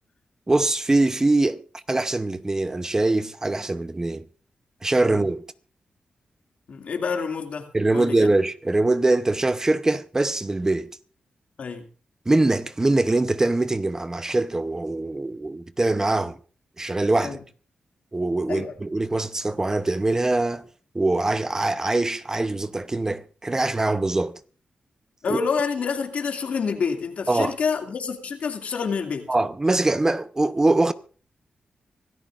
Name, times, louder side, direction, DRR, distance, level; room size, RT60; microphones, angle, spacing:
voice 1, 0.5-4.2 4.8-5.4 7.7-10.9 12.3-16.4 16.8-17.4 18.1-20.6 20.9-24.3 25.3-25.4 27.3-27.5 29.3-30.9, right 2 dB, 20° right, 0.8 m, -23 dB
voice 2, 6.7-7.7 7.9-8.2 11.6-11.9 17.2-17.4 18.5-18.7 25.2-29.3, left 5 dB, 70° left, 2.4 m, -27 dB
25.5 x 13.5 x 2.5 m
cardioid pair, 85°, 2 cm